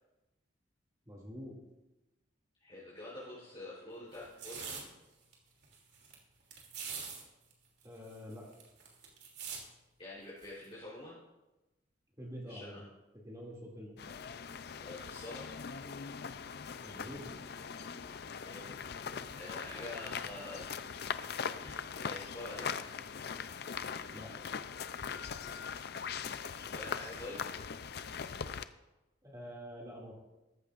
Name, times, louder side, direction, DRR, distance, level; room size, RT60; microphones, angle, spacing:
voice 1, 1.1-1.6 7.8-8.5 12.2-12.8 13.1-14.0 16.8-17.4 24.1-24.3 29.2-30.1, equal, 20° right, -3 dB, 2.4 m, -46 dB
voice 2, 2.6-4.8 10.0-11.2 12.5-12.8 14.8-15.5 18.4-18.8 19.3-20.7 21.6-22.8 26.2-27.4, left 2 dB, 30° left, -8 dB, 3.7 m, -46 dB
sound 1, 4.1-4.8 5.3-5.4 5.6-6.1 6.5-7.2 7.5-7.6 7.8-9.6 10.4-10.7, right 6 dB, 60° right, 2.8 m, -43 dB
sound 2, 14.0-28.6, left 6 dB, 55° left, 0.4 m, -41 dB
14.5 x 14.0 x 2.5 m, 1.0 s
head